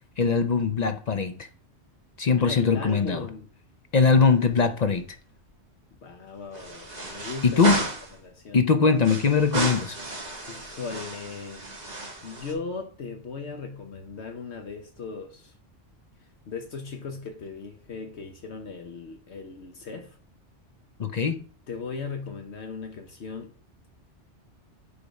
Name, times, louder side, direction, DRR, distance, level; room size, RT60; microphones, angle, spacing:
voice 1, 0.2-1.5 2.2-3.3 3.9-5.0 7.4-7.8 8.5-10.0 21.0-21.4, left 5 dB, 45° left, 0.6 m, -21 dB
voice 2, 2.4-3.5 6.0-7.6 8.2-8.6 10.4-11.6 12.2-15.5 16.5-20.2 21.7-23.5, left 4 dB, 65° left, 1.1 m, -37 dB
sound 1, 4.0-4.7 5.0-5.1 6.5-8.2 9.0-12.5, right 2 dB, 35° right, 1.6 m, -33 dB
8.5 x 3.4 x 5.3 m
omnidirectional pair, 1.2 m